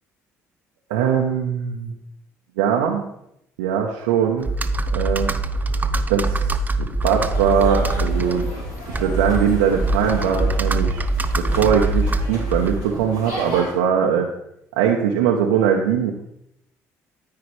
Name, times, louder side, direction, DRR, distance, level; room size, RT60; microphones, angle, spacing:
voice 1, 0.9-1.9 2.6-3.0 3.6-4.5 4.9-5.3 6.1-8.5 8.9-11.1 11.3-14.3 14.8-16.1, right 8 dB, 80° right, -1 dB, 0.8 m, -21 dB
Computer keyboard, 4.4-13.0, right 2 dB, 25° right, 0.6 m, -23 dB
sound 1, 7.0-13.7, equal, 75° left, 3.0 m, -33 dB
13.0 x 4.8 x 3.2 m, 0.78 s
hypercardioid pair, 55°, 7 cm